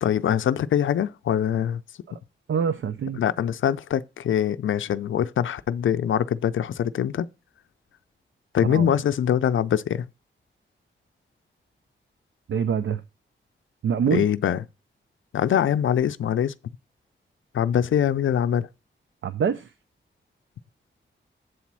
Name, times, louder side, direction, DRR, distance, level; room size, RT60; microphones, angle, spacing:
voice 1, 0.0-1.8 3.2-7.3 8.5-10.1 14.1-14.6 15.3-16.5 17.5-18.7, left 9 dB, 80° left, 0.5 m, -23 dB
voice 2, 2.5-3.2 8.6-8.9 12.5-13.0 13.8-14.2 19.2-19.7, right 7 dB, 75° right, 0.5 m, -25 dB
7.9 x 4.1 x 6.0 m
wide cardioid pair, 125°, 20 cm